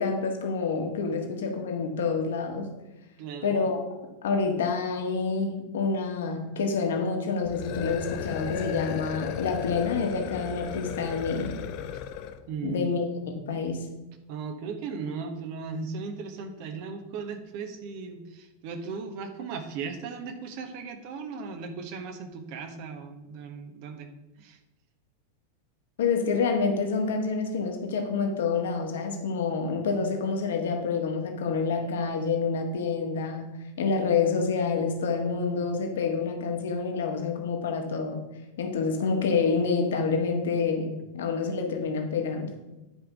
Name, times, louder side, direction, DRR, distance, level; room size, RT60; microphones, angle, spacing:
voice 1, 0.0-2.7 3.4-3.8 4.2-11.6 12.6-13.1 13.3-13.8 26.0-38.3 38.6-42.5, left 5 dB, 60° left, 4 dB, 1.6 m, -28 dB
voice 2, 3.2-3.5 12.5-12.9 14.3-24.1 24.4-24.6, right 5 dB, 45° right, 6 dB, 1.3 m, -37 dB
sound 1, 7.4-12.4, left 8 dB, 45° left, 0.7 m, -35 dB
10.5 x 5.2 x 6.0 m, 1.0 s
figure-of-eight pair, 90°, 0 cm